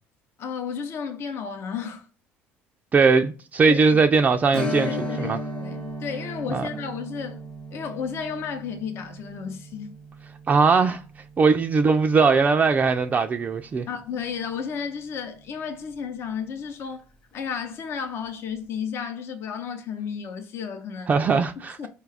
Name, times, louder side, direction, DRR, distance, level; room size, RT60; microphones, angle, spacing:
voice 1, 0.4-2.0 3.7-3.8 4.9-7.4 7.7-10.0 13.9-17.0 17.3-21.1 21.8-21.9, left 6 dB, 55° left, 0.7 m, -33 dB
voice 2, 2.9-5.4 6.5-6.7 10.5-11.0 11.4-13.9 21.1-21.9, right 4 dB, 30° right, 0.3 m, -20 dB
Strum, 4.5-13.7 14.0-14.1 16.7-16.9 17.3-17.4, equal, 20° left, 0.9 m, -36 dB
4.6 x 2.3 x 3.3 m
supercardioid pair, 95°, 5 cm